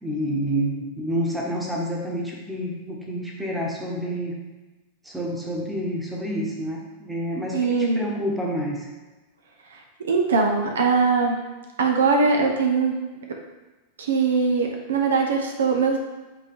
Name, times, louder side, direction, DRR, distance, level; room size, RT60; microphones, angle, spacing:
voice 1, 0.0-4.4 5.0-8.9, equal, 5° right, -2 dB, 1.3 m, -28 dB
voice 2, 7.5-8.0 9.7-9.8 10.1-11.4 11.8-12.9 14.0-16.0, right 4 dB, 65° right, 2 dB, 0.8 m, -21 dB
8.2 x 3.6 x 3.7 m, 1.2 s
figure-of-eight pair, 90°, 0 cm